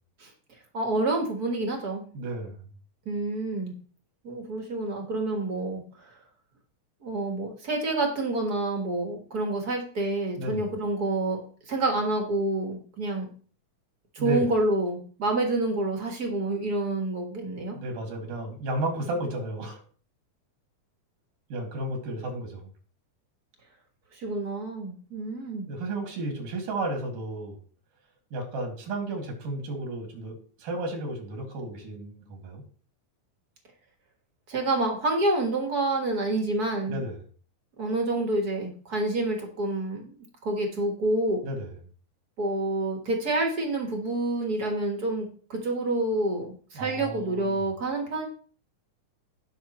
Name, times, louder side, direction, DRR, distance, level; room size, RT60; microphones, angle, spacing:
voice 1, 0.7-2.0 3.0-3.7 4.2-5.8 7.0-11.4 11.7-13.3 14.1-17.8 24.1-25.7 34.5-37.0 37.8-40.1 40.4-41.4 42.4-48.3, right 2 dB, 40° right, 2 dB, 1.5 m, -28 dB
voice 2, 2.2-2.6 10.4-10.7 14.2-14.5 17.7-19.8 21.5-22.6 25.7-27.6 28.3-30.3 30.6-32.6 36.9-37.2 41.4-41.7 46.8-47.6, right 2 dB, 90° right, 2 dB, 3.8 m, -33 dB
17.5 x 5.9 x 3.1 m, 0.42 s
omnidirectional pair, 3.6 m